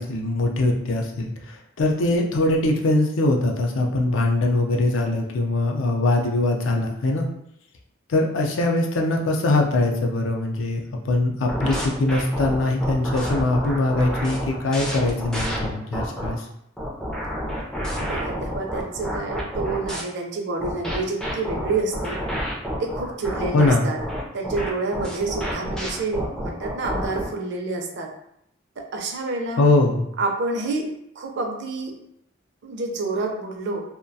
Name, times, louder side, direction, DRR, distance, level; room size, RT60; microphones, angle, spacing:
voice 1, 0.0-7.3 8.1-16.5 23.5-23.9 29.6-30.1, left 2 dB, 70° left, 1 dB, 0.4 m, -22 dB
sound 1, 11.5-16.3 16.8-20.0 20.6-27.3, equal, 5° left, 0.3 m, -29 dB
voice 2, 18.0-22.2 22.8-24.0 24.3-28.1 28.8-29.6 30.2-30.9 31.2-31.9 32.6-33.8, right 3 dB, 60° right, 2 dB, 0.4 m, -28 dB
2.3 x 2.1 x 2.6 m, 0.77 s
head